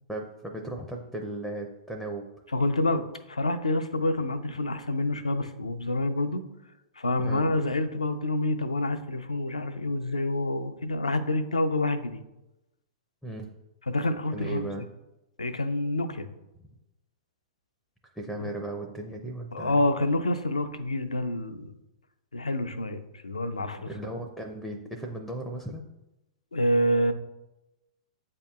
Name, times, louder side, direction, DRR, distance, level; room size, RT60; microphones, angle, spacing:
voice 1, 0.0-2.3 7.2-7.4 13.2-13.5 14.3-14.9 18.2-19.8 23.8-25.9, right 1 dB, ahead, 3 dB, 0.5 m, -36 dB
voice 2, 2.5-6.4 7.0-12.2 13.9-14.7 15.4-16.3 18.4-18.5 19.5-21.7 22.3-23.9 26.5-27.1, left 1 dB, 85° left, 10 dB, 0.4 m, -27 dB
8.1 x 2.8 x 2.3 m, 0.95 s
figure-of-eight pair, 105°, 3 cm